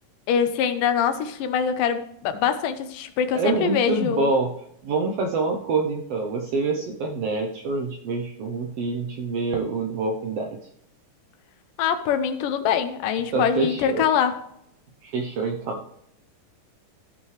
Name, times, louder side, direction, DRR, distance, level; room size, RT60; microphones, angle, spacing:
voice 1, 0.3-4.3 11.8-14.4, left 8 dB, 90° left, 10 dB, 2.4 m, -24 dB
voice 2, 3.3-4.5 4.8-10.6 13.3-14.0 15.0-16.0, right 3 dB, 75° right, 3 dB, 1.4 m, -26 dB
14.5 x 5.5 x 3.2 m, 0.74 s
omnidirectional pair, 3.7 m